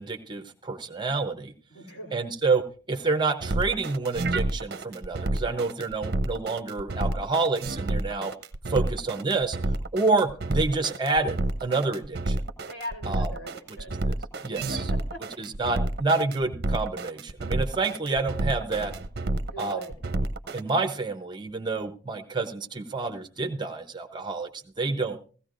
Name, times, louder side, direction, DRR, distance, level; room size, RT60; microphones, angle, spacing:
voice 1, 0.0-1.5 2.1-8.3 8.7-9.6 9.9-12.4 13.1-13.3 14.1-14.2 14.4-14.8 15.4-18.9 19.6-19.8 20.5-25.2, right 3 dB, 25° right, 5 dB, 0.8 m, -28 dB
voice 2, 1.7-2.2 5.4-5.6 8.7-8.9 12.7-14.1 14.7-15.5 19.5-20.0, right 1 dB, 55° left, 1 dB, 3.2 m, -40 dB
sound 1, 3.4-20.6, right 2 dB, 55° right, 0.7 m, -29 dB
16.5 x 15.5 x 2.5 m, 0.40 s
head